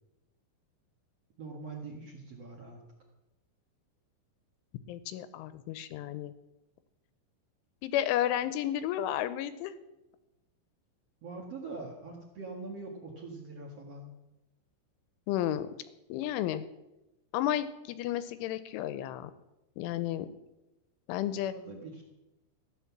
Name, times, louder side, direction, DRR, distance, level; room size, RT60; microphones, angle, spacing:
voice 1, 1.4-2.8 11.2-14.1 21.4-22.0, right 3 dB, 85° right, 1 dB, 1.4 m, -43 dB
voice 2, 4.9-6.3 7.8-9.7 15.3-15.7 16.1-16.6 17.3-19.3 19.8-20.3 21.1-21.5, left 12 dB, 80° left, 13 dB, 3.0 m, -32 dB
14.5 x 11.0 x 7.2 m, 0.96 s
omnidirectional pair, 5.8 m